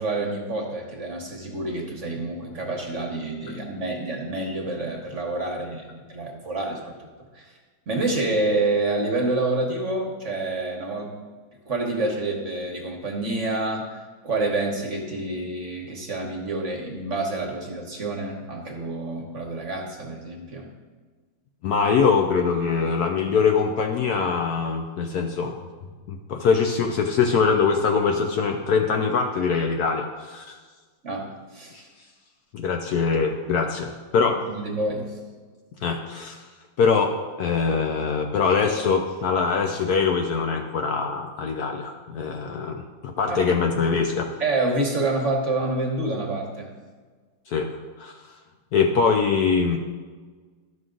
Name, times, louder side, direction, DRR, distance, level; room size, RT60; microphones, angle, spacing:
voice 1, 0.0-7.1 7.3-7.5 7.9-11.1 11.7-14.0 14.2-20.7 31.0-31.7 34.2-35.2 43.3-43.4 44.4-46.7, right 2 dB, 45° right, 1 dB, 1.3 m, -28 dB
voice 2, 21.6-25.6 26.1-30.6 31.7-31.8 32.5-34.4 35.8-36.4 36.8-37.1 37.4-44.3 47.5-47.7 48.0-48.2 48.7-49.8, left 5 dB, 65° left, 3 dB, 1.0 m, -23 dB
12.5 x 6.2 x 3.8 m, 1.4 s
omnidirectional pair, 2.0 m